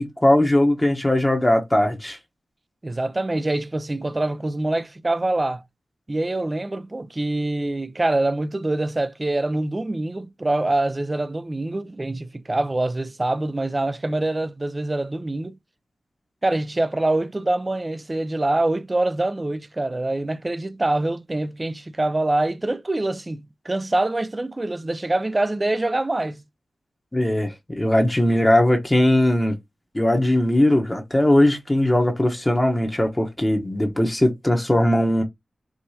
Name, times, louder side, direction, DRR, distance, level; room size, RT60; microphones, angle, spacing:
voice 1, 0.0-2.2 27.1-29.5 29.9-35.2, left 1 dB, 20° left, 0.9 m, -19 dB
voice 2, 2.8-5.6 6.1-15.6 16.4-26.4, right 2 dB, 30° right, 0.4 m, -25 dB
4.8 x 2.6 x 2.7 m
cardioid pair, 50°, 0 cm